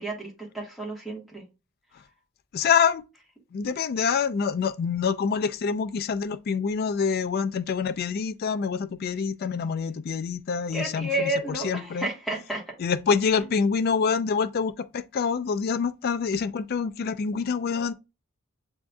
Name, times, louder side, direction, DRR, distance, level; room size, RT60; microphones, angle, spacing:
voice 1, 0.0-1.4 10.7-12.6, right 1 dB, ahead, 1.3 m, -31 dB
voice 2, 2.5-3.0 3.5-12.1 12.8-17.9, left 6 dB, 45° left, 0.3 m, -26 dB
7.1 x 2.6 x 2.2 m
head